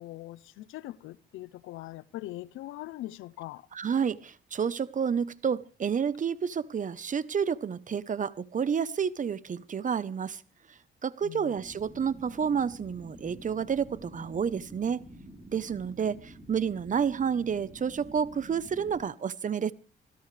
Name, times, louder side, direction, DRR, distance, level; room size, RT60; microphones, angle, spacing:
voice 1, 0.0-3.7 11.2-11.6, left 15 dB, 90° left, 0.8 m, -41 dB
voice 2, 3.7-10.4 11.0-15.0 15.5-19.7, right 7 dB, 40° right, 1.0 m, -30 dB
sound 1, 11.6-19.0, right 1 dB, 20° right, 4.8 m, -49 dB
26.0 x 16.0 x 3.4 m
cardioid pair, 90°, 20 cm